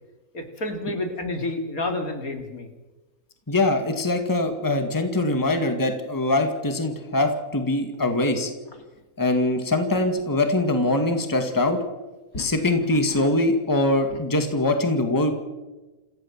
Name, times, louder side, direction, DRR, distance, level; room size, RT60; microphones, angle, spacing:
voice 1, 0.3-2.7 12.3-12.5 12.9-13.2 14.1-14.2, left 2 dB, 65° left, 4 dB, 3.3 m, -30 dB
voice 2, 3.5-8.5 9.2-11.8 12.4-15.3, left 2 dB, 10° left, 6 dB, 2.0 m, -23 dB
27.5 x 15.5 x 7.4 m, 1.1 s
omnidirectional pair, 1.6 m